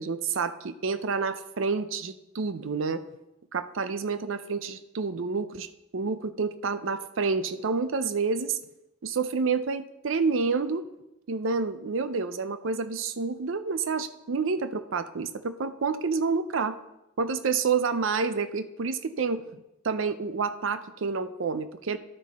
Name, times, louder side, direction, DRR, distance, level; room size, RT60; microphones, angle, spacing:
voice 1, 0.0-3.0 3.5-5.7 5.9-8.6 9.0-10.8 11.3-16.8 17.2-19.6 19.8-22.0, right 4 dB, 65° right, 12 dB, 0.5 m, -29 dB
11.5 x 6.2 x 4.2 m, 0.93 s
head